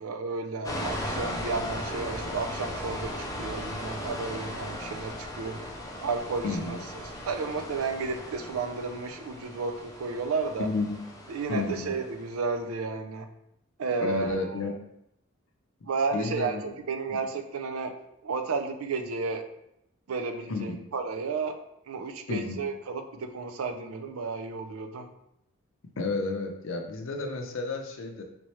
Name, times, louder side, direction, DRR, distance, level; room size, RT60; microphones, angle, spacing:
voice 1, 0.0-5.6 6.0-6.8 7.2-10.7 11.3-13.3 13.8-14.7 15.9-17.9 18.2-19.5 20.1-21.6 21.9-25.1, right 4 dB, 85° right, 6 dB, 0.4 m, -32 dB
sound 1, 0.6-12.4, left 1 dB, 15° left, 0.4 m, -37 dB
voice 2, 6.4-6.8 10.6-11.9 14.0-14.7 16.1-16.6 17.1-17.2 20.5-20.8 22.3-22.6 26.0-28.2, left 3 dB, 65° left, 4 dB, 0.5 m, -32 dB
3.3 x 3.2 x 3.0 m, 0.82 s
head